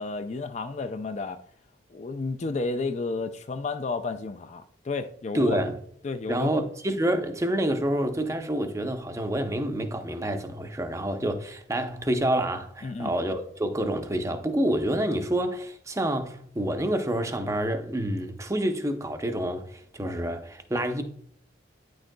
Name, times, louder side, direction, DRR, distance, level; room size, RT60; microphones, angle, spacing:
voice 1, 0.0-1.4 1.9-5.6 6.0-6.5 12.8-13.1, left 3 dB, 35° left, 0.4 m, -32 dB
voice 2, 5.3-5.8 6.3-21.0, right 1 dB, 15° right, 0.6 m, -28 dB
9.4 x 6.3 x 2.2 m
head